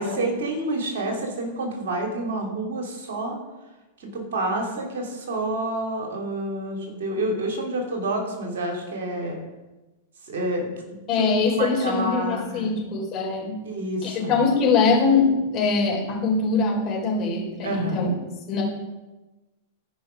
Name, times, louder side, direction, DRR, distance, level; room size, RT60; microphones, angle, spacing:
voice 1, 0.0-3.4 4.0-9.4 10.3-10.7 11.2-11.3 11.6-12.8 13.6-14.4 17.6-18.1, right 1 dB, 60° right, 2 dB, 2.8 m, -28 dB
voice 2, 11.1-13.6 14.0-18.1 18.5-18.6, left 4 dB, 40° left, -2 dB, 3.9 m, -22 dB
14.5 x 5.5 x 5.2 m, 1.1 s
figure-of-eight pair, 100°, 0 cm